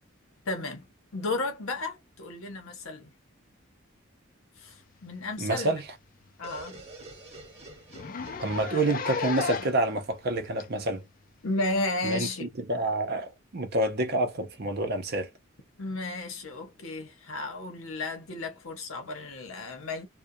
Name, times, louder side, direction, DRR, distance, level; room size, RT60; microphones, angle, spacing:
voice 1, 0.5-0.9 1.1-3.1 4.6-5.7 6.4-6.8 11.4-12.5 15.8-20.1, left 2 dB, 75° left, 0.8 m, -33 dB
Zipper (clothing), 5.3-5.4 5.8-5.9 6.3-6.4 6.7-6.8 7.1-7.2 7.9-9.9 10.6-10.7 11.7-11.8, left 6 dB, 40° left, 0.4 m, -34 dB
voice 2, 5.4-5.9 8.4-11.0 12.0-15.3, right 2 dB, 50° right, 0.6 m, -28 dB
sound 1, 6.4-10.2, right 2 dB, 30° right, 0.9 m, -48 dB
2.3 x 2.2 x 2.6 m
head